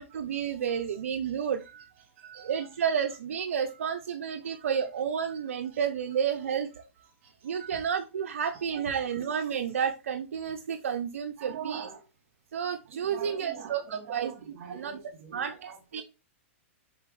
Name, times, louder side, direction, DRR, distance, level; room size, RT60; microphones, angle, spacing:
voice 1, 0.0-1.6 2.4-6.7 7.4-11.9 12.5-14.3 14.7-15.0 15.3-16.0, right 7 dB, 90° right, 0.6 m, -31 dB
voice 2, 2.2-2.5 4.4-4.7 7.2-7.8 11.4-12.0 13.0-16.0, right 7 dB, 50° right, 2.8 m, -44 dB
7.3 x 4.2 x 3.1 m
hypercardioid pair, 135°, 7 cm